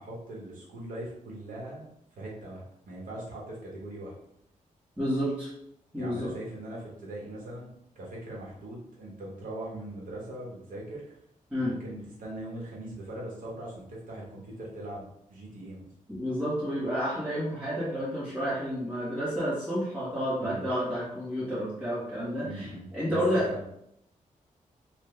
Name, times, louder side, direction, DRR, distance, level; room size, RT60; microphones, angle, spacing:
voice 1, 0.0-4.1 6.0-11.2 11.6-15.9 20.4-20.6 22.4-23.2 23.5-23.6, right 1 dB, 75° right, -4 dB, 1.4 m, -41 dB
voice 2, 5.0-5.5 5.9-6.3 11.5-11.7 16.1-22.7 22.9-23.4, equal, 10° right, -11 dB, 1.4 m, -30 dB
4.2 x 2.6 x 3.3 m, 0.75 s
wide cardioid pair, 165°, 14 cm